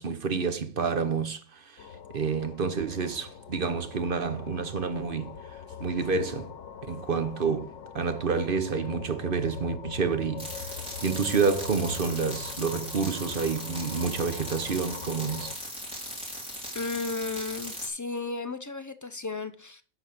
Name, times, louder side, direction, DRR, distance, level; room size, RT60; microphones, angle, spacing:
voice 1, 0.0-1.9 2.1-5.4 5.8-6.5 6.9-10.5 11.0-15.5, right 5 dB, 50° right, 1.0 m, -29 dB
sound 1, 1.8-15.5, left 7 dB, 85° left, 1.1 m, -43 dB
sound 2, 10.4-17.9, equal, 5° right, 2.9 m, -39 dB
voice 2, 16.7-19.8, left 3 dB, 25° left, 0.4 m, -34 dB
11.0 x 4.1 x 6.6 m
omnidirectional pair, 1.2 m